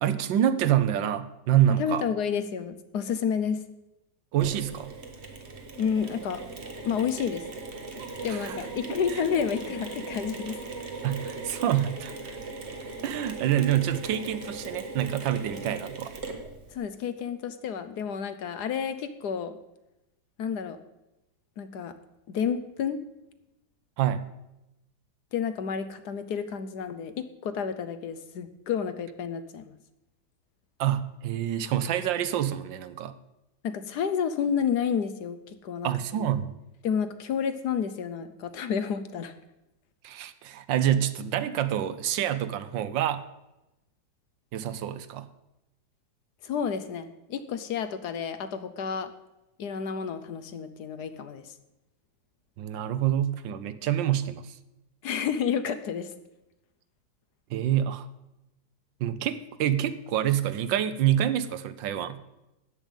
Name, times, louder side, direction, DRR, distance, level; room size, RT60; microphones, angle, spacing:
voice 1, 0.0-2.0 4.3-4.9 8.3-8.6 9.1-9.2 11.0-12.4 13.0-16.1 24.0-24.3 30.8-33.1 35.8-36.5 40.0-43.2 44.5-45.3 52.6-54.5 57.5-58.1 59.0-62.2, right 11 dB, 80° right, 13 dB, 1.4 m, -27 dB
voice 2, 1.8-3.6 5.8-6.4 6.8-7.4 8.2-10.6 16.7-19.6 20.4-20.8 21.6-21.9 22.3-23.0 25.3-29.7 33.6-35.9 36.8-39.3 46.4-49.1 49.6-51.5 55.0-56.1, left 7 dB, 65° left, 11 dB, 1.2 m, -30 dB
Mechanisms, 4.4-16.7, right 3 dB, 35° right, 1.6 m, -39 dB
13.5 x 9.1 x 5.3 m, 0.94 s
omnidirectional pair, 2.1 m